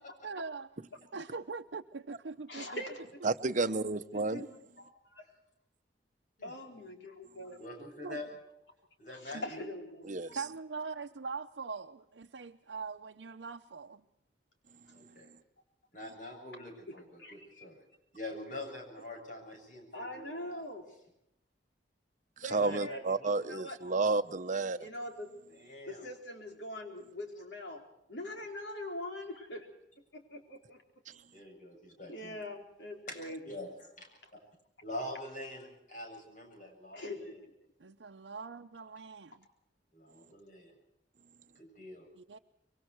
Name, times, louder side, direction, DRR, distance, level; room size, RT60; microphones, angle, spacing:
voice 1, 0.2-0.7 1.1-2.8 3.2-3.3 3.6-3.7 8.0-8.2 9.3-9.4 10.3-14.0 37.8-39.5 42.1-42.4, right 4 dB, 90° right, 0.7 m, -42 dB
voice 2, 2.5-3.2 4.1-5.3 6.4-7.6 9.1-10.1 16.9-17.6 19.9-20.8 22.4-23.0 23.4-23.8 24.7-25.3 25.9-27.8 28.1-29.7 30.1-30.8 32.1-33.4 34.2-34.3 36.9-37.5, left 1 dB, 80° left, 4.4 m, -43 dB
voice 3, 3.2-4.5 10.1-10.4 22.5-24.8, right 3 dB, 45° right, 0.9 m, -31 dB
voice 4, 7.6-8.3 9.0-9.6 14.9-15.3 15.9-17.8 18.1-20.6 22.6-23.6 25.6-26.0 31.3-32.4 33.1-33.2 33.5-33.7 34.0-34.1 34.3-34.4 34.8-37.3 39.9-40.7 41.6-42.1, left 1 dB, 50° left, 7.5 m, -45 dB
25.0 x 23.5 x 4.6 m
head